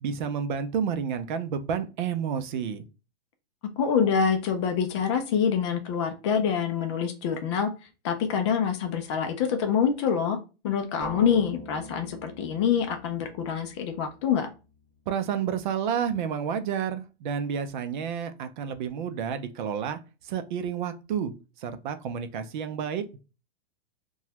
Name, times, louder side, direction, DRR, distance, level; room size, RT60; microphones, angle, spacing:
voice 1, 0.0-2.8 15.1-20.0 20.3-21.3 21.6-23.2, right 7 dB, 45° right, 10 dB, 0.5 m, -30 dB
voice 2, 3.8-7.7 8.0-10.4 10.6-14.5, left 7 dB, 30° left, 6 dB, 0.4 m, -26 dB
sound 1, 11.0-15.0, equal, 10° left, 1.5 m, -43 dB
2.9 x 2.3 x 2.8 m, 0.31 s
hypercardioid pair, 145°, 33 cm